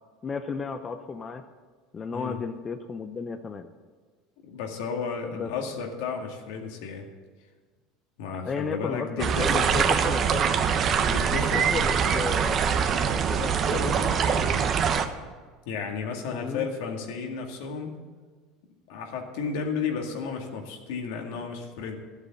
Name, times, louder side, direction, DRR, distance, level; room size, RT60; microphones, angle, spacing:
voice 1, 0.2-1.4 1.9-3.7 5.3-5.5 8.4-10.5 11.4-12.6 13.1-14.6 16.3-16.7, left 5 dB, 30° left, 7 dB, 0.7 m, -34 dB
voice 2, 4.4-7.1 8.2-9.7 11.0-11.7 15.7-18.0 18.9-21.9, left 5 dB, 80° left, 2 dB, 2.0 m, -33 dB
sound 1, 9.2-15.1, right 7 dB, 40° right, 1.0 m, -24 dB
13.0 x 8.2 x 7.2 m, 1.5 s
supercardioid pair, 110°, 0 cm